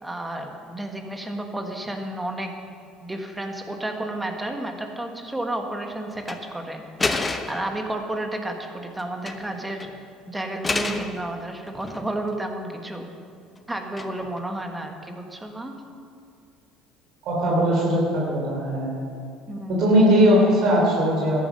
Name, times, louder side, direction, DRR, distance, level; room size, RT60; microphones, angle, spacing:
voice 1, 0.0-2.5 3.0-6.8 7.5-9.9 10.3-13.0 13.7-15.8 19.5-19.9, right 1 dB, 10° right, 4 dB, 1.6 m, -31 dB
sound 1, 6.2-6.4 7.0-7.7 9.0-9.5 9.8-9.9 10.6-11.1 11.7-12.3 14.0-14.4, left 3 dB, 20° left, 0.9 m, -29 dB
voice 2, 17.2-18.9 19.7-21.5, equal, 65° right, -4 dB, 3.8 m, -19 dB
13.5 x 10.0 x 5.4 m, 2.4 s
supercardioid pair, 90°, 0 cm